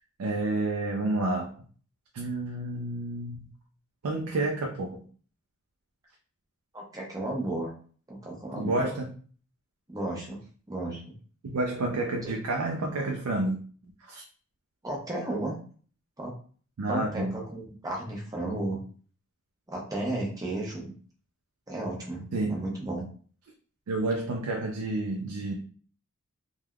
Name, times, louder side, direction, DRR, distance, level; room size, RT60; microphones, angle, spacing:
voice 1, 0.2-1.5 2.1-3.5 4.0-5.0 8.6-9.1 11.4-13.6 14.1-14.2 16.8-17.4 22.3-22.6 23.9-25.5, right 2 dB, 85° right, 1 dB, 0.4 m, -29 dB
voice 2, 6.7-7.7 8.1-8.9 9.9-10.4 10.7-11.0 12.2-12.3 14.8-15.5 16.2-16.3 16.9-18.8 19.7-20.9 21.7-22.2 22.5-23.0, right 2 dB, 15° right, -3 dB, 0.8 m, -33 dB
3.3 x 2.3 x 2.3 m, 0.43 s
head